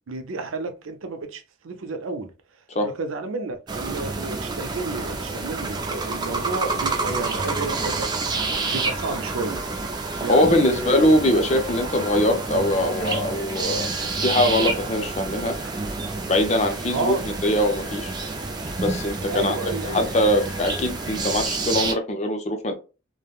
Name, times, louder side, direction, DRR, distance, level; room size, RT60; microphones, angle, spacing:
voice 1, 0.1-2.3 2.8-8.1 8.7-9.7 10.2-11.1 16.9-17.2 19.3-20.1, right 3 dB, 85° right, 0.5 m, -31 dB
sound 1, 3.7-21.9, right 3 dB, 20° right, 0.4 m, -29 dB
sound 2, 7.4-21.5, left 1 dB, 60° left, 0.8 m, -43 dB
voice 2, 10.3-13.9 14.2-15.6 16.3-17.1 17.4-18.1 18.8-19.5 19.9-22.7, left 1 dB, 35° left, 0.5 m, -22 dB
3.4 x 2.1 x 2.3 m
head